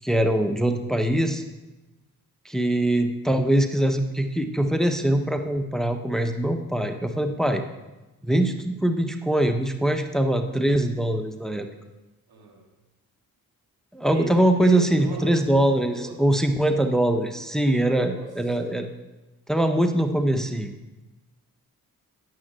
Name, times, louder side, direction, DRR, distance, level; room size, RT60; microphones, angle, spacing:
voice 1, 0.0-1.4 2.4-7.6 8.2-11.7 13.9-18.9 19.5-20.7, right 1 dB, ahead, 6 dB, 1.1 m, -23 dB
voice 2, 12.3-12.6 14.0-15.4 15.9-16.2 17.9-18.3 18.6-18.9, right 2 dB, 75° right, 0 dB, 2.5 m, -38 dB
9.4 x 7.4 x 7.8 m, 1.1 s
cardioid pair, 45°, 37 cm